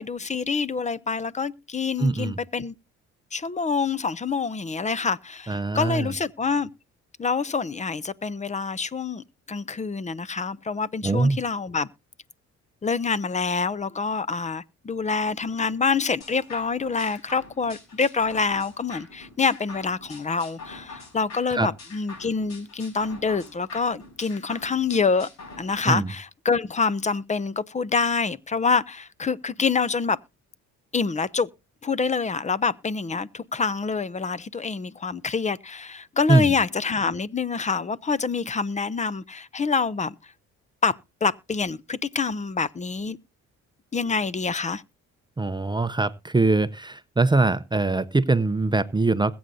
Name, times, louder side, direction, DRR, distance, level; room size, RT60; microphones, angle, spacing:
voice 1, 0.0-2.7 3.3-6.7 7.2-11.9 12.8-25.3 25.6-30.2 30.9-31.5 31.8-40.1 40.8-40.9 41.2-43.2 43.9-44.8, left 5 dB, 25° left, 0.6 m, -26 dB
voice 2, 2.0-2.4 5.5-6.1 11.0-11.4 21.5-21.7 25.8-26.1 36.3-36.5 45.4-49.4, right 3 dB, 15° right, 0.6 m, -22 dB
sound 1, 16.2-25.8, left 3 dB, 65° left, 6.4 m, -45 dB
21.0 x 7.8 x 2.7 m
cardioid pair, 90°, 30 cm